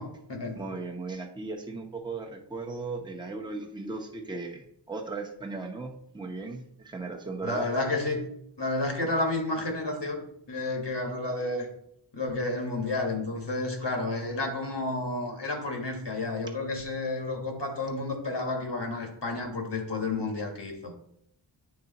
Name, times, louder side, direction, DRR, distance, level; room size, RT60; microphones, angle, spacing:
voice 1, 0.0-0.6 7.4-8.3 8.6-11.7 12.1-20.9, left 2 dB, 65° left, 3 dB, 1.5 m, -31 dB
voice 2, 0.5-7.7, right 3 dB, 10° right, 1 dB, 0.8 m, -37 dB
8.8 x 3.4 x 4.0 m, 0.72 s
wide cardioid pair, 60°, 44 cm